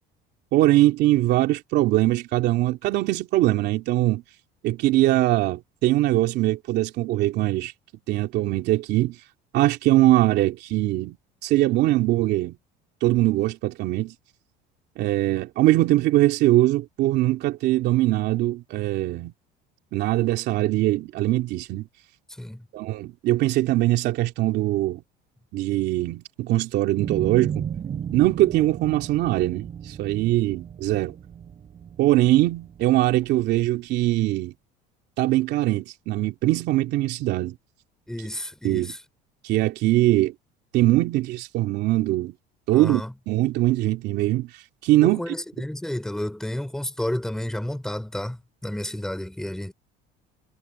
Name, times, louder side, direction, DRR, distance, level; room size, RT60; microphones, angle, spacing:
voice 1, 0.5-4.2 4.6-7.7 8.1-9.1 9.5-11.2 11.4-12.6 13.0-14.1 15.0-19.3 19.9-21.9 22.7-25.0 25.5-27.6 28.1-31.2 32.0-34.5 35.2-37.5 38.6-38.9 39.4-40.3 40.7-42.3 42.7-43.0 43.3-44.5 44.8-45.2, right 16 dB, 60° right, 2.8 m, -22 dB
sound 1, 27.0-33.5, right 8 dB, 30° right, 6.8 m, -35 dB
voice 2, 38.1-39.0 42.7-43.1 45.0-49.7, left 1 dB, 5° left, 3.7 m, -31 dB
cardioid pair, 165°, 20 cm